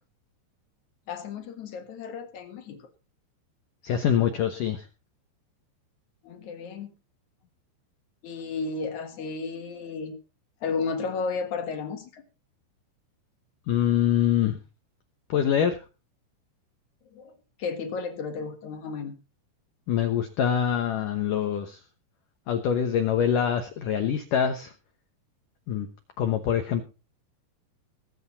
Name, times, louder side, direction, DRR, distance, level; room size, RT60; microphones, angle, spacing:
voice 1, 1.1-2.9 6.2-6.9 8.2-10.2 10.6-12.2 17.1-19.2, left 4 dB, 55° left, 7 dB, 2.4 m, -33 dB
voice 2, 3.8-4.9 13.7-14.6 15.3-15.8 19.9-21.8 22.5-24.7 25.7-25.9 26.2-26.8, left 9 dB, 70° left, 7 dB, 2.0 m, -24 dB
20.5 x 8.2 x 4.1 m, 0.30 s
omnidirectional pair, 5.2 m